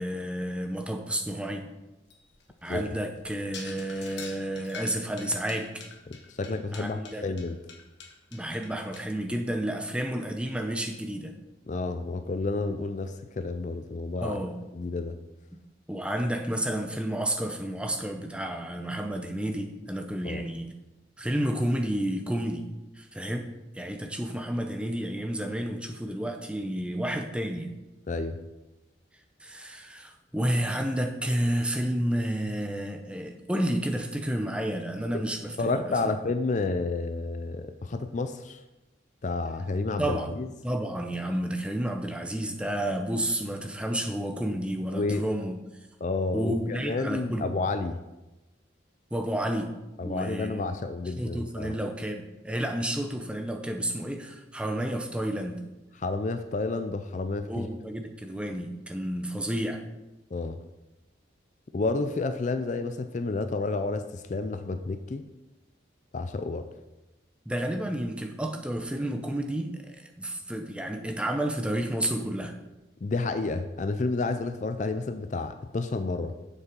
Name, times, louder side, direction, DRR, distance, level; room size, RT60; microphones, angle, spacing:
voice 1, 0.0-1.7 2.6-5.9 6.7-7.3 8.3-11.3 14.2-14.6 15.9-20.7 21.2-22.7 22.9-23.5 23.7-27.7 29.4-36.1 40.0-45.6 46.3-47.6 49.1-49.7 50.0-50.6 51.1-55.6 57.5-59.8 67.5-72.6, right 1 dB, 5° right, 4 dB, 0.7 m, -31 dB
sound 1, 2.1-9.0, left 5 dB, 65° left, 1.3 m, -46 dB
voice 2, 6.1-7.6 11.7-14.4 14.7-15.2 20.2-20.4 28.1-28.4 35.1-35.2 35.6-38.6 39.2-40.5 44.9-45.2 46.0-48.0 50.0-51.8 56.0-57.7 60.3-60.6 61.7-65.3 66.1-66.7 73.0-76.3, left 3 dB, 40° left, 9 dB, 0.4 m, -30 dB
7.3 x 6.8 x 5.2 m, 1.0 s
head